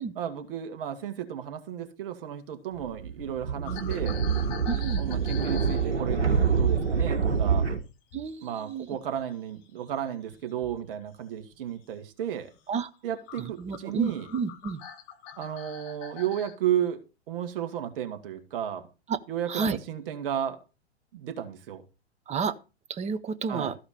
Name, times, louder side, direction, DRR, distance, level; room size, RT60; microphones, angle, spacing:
voice 1, 0.2-4.2 5.0-7.7 8.4-12.5 13.0-14.3 15.4-17.0 17.3-18.9 19.3-20.6 21.1-21.8 23.5-23.7, right 10 dB, 55° right, 1.9 m, -33 dB
sound 1, 2.8-7.8, right 6 dB, 90° right, 1.6 m, -26 dB
sound 2, 3.6-8.4 8.7-10.8 11.4-11.7 12.2-12.4 12.9-13.0 13.3-16.5, left 8 dB, 45° left, 2.6 m, -45 dB
voice 2, 4.7-5.0 8.1-8.9 12.7-12.9 13.4-14.8 19.1-19.2 19.5-19.8 22.3-22.6 22.9-23.8, right 5 dB, 20° right, 1.0 m, -31 dB
14.0 x 5.0 x 6.7 m
figure-of-eight pair, 100°, 33 cm